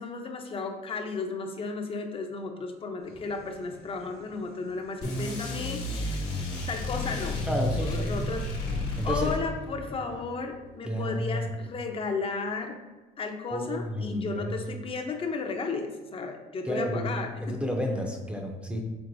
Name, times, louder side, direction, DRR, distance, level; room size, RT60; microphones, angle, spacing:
voice 1, 0.0-7.4 7.8-8.5 9.0-12.8 13.2-17.6, left 4 dB, 35° left, 5 dB, 0.6 m, -34 dB
sound 1, 3.0-11.3, left 2 dB, 65° left, 1.2 m, -49 dB
sound 2, 5.0-9.8, left 1 dB, 85° left, 1.2 m, -31 dB
voice 2, 7.5-8.1 9.0-9.3 10.8-11.5 13.5-14.6 16.6-17.2 17.4-18.8, equal, 5° right, 1 dB, 0.5 m, -31 dB
4.5 x 3.6 x 2.6 m, 1.2 s
cardioid pair, 110°, 17 cm